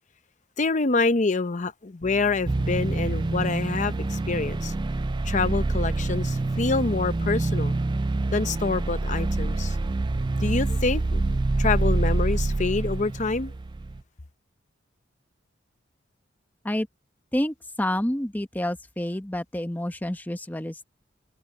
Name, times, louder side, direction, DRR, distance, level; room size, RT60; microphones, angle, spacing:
voice 1, 0.6-4.7 5.2-7.8 8.3-9.8 10.4-11.2 11.6-13.5, left 3 dB, 40° left, 0.7 m, -26 dB
Bass guitar, 2.0-8.3, equal, 70° left, 2.5 m, -47 dB
sound 1, 2.5-14.0, right 2 dB, 25° right, 0.4 m, -26 dB
voice 2, 17.3-20.8, left 1 dB, 10° left, 0.9 m, -28 dB
head